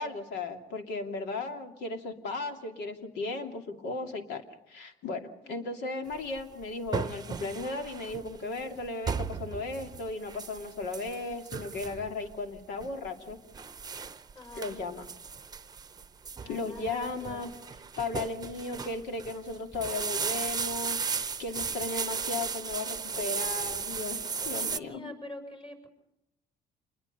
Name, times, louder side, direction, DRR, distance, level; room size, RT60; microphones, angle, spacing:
voice 1, 0.0-13.4 14.6-15.1 16.4-17.5 18.0-25.1, left 3 dB, 80° left, 5 dB, 2.7 m, -36 dB
sound 1, 6.1-24.8, right 5 dB, 25° right, 0.8 m, -36 dB
voice 2, 14.3-14.7 16.3-17.5 24.4-25.9, left 1 dB, 35° left, 4 dB, 6.3 m, -46 dB
28.0 x 21.5 x 5.5 m, 0.85 s
cardioid pair, 110°, 17 cm